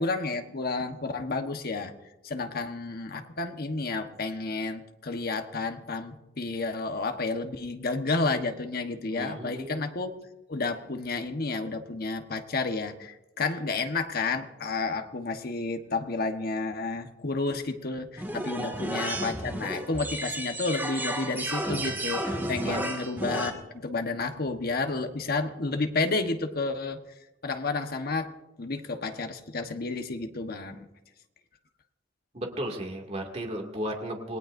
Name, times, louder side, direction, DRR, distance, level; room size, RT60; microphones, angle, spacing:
voice 1, 0.0-1.9 2.2-10.1 10.5-27.0 27.4-28.3 28.6-30.9, left 3 dB, 55° left, 6 dB, 1.2 m, -31 dB
voice 2, 9.2-9.9 18.6-18.7 22.6-22.8 32.3-34.4, right 1 dB, 35° right, 2 dB, 2.4 m, -34 dB
sound 1, 18.2-23.5, right 1 dB, 10° right, 2.0 m, -32 dB
27.5 x 19.0 x 2.6 m, 0.99 s
head